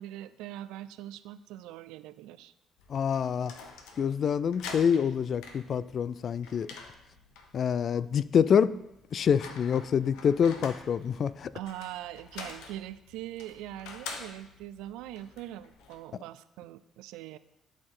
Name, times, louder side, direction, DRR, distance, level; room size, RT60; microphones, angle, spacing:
voice 1, 0.0-2.5 11.5-17.4, right 13 dB, 85° right, 14 dB, 0.3 m, -42 dB
sound 1, 2.8-16.0, left 5 dB, 85° left, 0.9 m, -47 dB
voice 2, 2.9-3.5 4.0-6.7 7.5-8.8 9.1-11.5, left 7 dB, 55° left, 17 dB, 0.3 m, -26 dB
11.0 x 4.5 x 3.8 m, 0.85 s
supercardioid pair, 70°, 0 cm